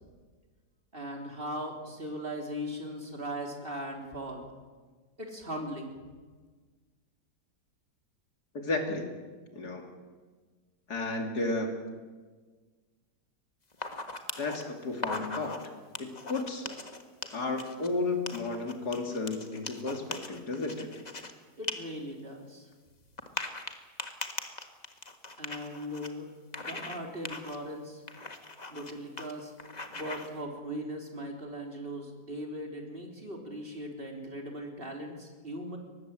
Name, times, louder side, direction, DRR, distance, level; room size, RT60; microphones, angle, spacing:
voice 1, 0.9-4.5 5.2-5.9 21.6-22.7 25.4-26.3 26.6-28.0 28.7-29.5 29.9-35.8, equal, 30° right, 2 dB, 3.8 m, -39 dB
voice 2, 8.5-9.1 9.5-9.9 10.9-11.8 14.4-15.6 16.0-16.7 17.3-20.9, left 3 dB, 65° left, 4 dB, 3.3 m, -33 dB
sound 1, 13.7-14.6 14.9-15.7 16.0-17.9 18.3-21.3 21.6-21.7 22.1-22.2 23.2-26.1 26.5-27.0 27.3-27.6 28.1-28.9 29.2-29.3 29.6-30.3, left 3 dB, 25° left, 1.6 m, -39 dB
23.0 x 19.5 x 7.8 m, 1.4 s
omnidirectional pair, 1.8 m